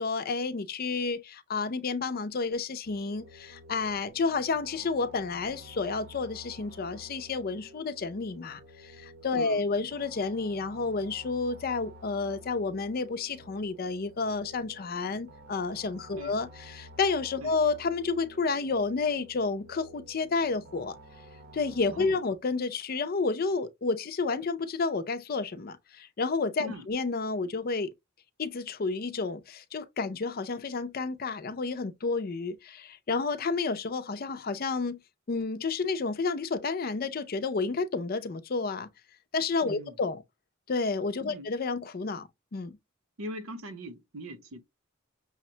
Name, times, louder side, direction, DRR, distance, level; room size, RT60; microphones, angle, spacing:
voice 1, 0.0-21.0 21.5-27.9 28.4-35.0 35.3-38.9 39.3-40.2 40.7-42.8, left 4 dB, 45° left, 0.5 m, -30 dB
sound 1, 2.8-22.2, equal, 50° right, 0.7 m, -51 dB
voice 2, 21.9-22.2 26.6-26.9 39.6-40.0 41.3-41.5 43.2-44.6, right 1 dB, 90° right, 0.7 m, -41 dB
6.3 x 2.1 x 2.7 m
head